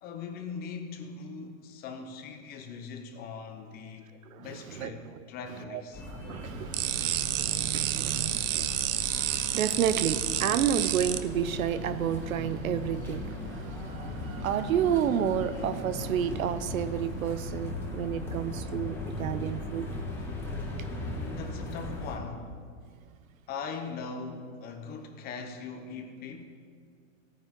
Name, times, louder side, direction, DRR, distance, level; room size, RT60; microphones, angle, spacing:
voice 1, 0.0-4.1 4.4-6.0 20.8-22.5 23.5-26.4, left 5 dB, 25° left, 5 dB, 0.9 m, -40 dB
sound 1, 5.9-22.2, left 2 dB, 5° left, 1.4 m, -38 dB
voice 2, 6.1-19.9, right 9 dB, 90° right, 13 dB, 0.8 m, -31 dB
sound 2, 6.7-11.2, right 13 dB, 45° right, 0.6 m, -30 dB
16.5 x 9.3 x 3.8 m, 2.1 s
supercardioid pair, 150°, 40 cm